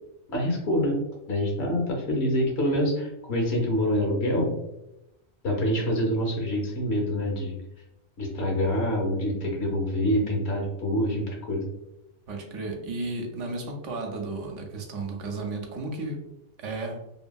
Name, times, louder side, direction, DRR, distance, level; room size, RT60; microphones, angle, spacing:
voice 1, 0.3-1.0 1.3-4.5 5.4-7.6 8.2-11.7, equal, 65° left, 0 dB, 1.0 m, -26 dB
voice 2, 12.3-16.2 16.6-17.0, right 2 dB, 80° right, 2 dB, 0.9 m, -33 dB
2.7 x 2.6 x 2.2 m, 0.87 s
omnidirectional pair, 1.3 m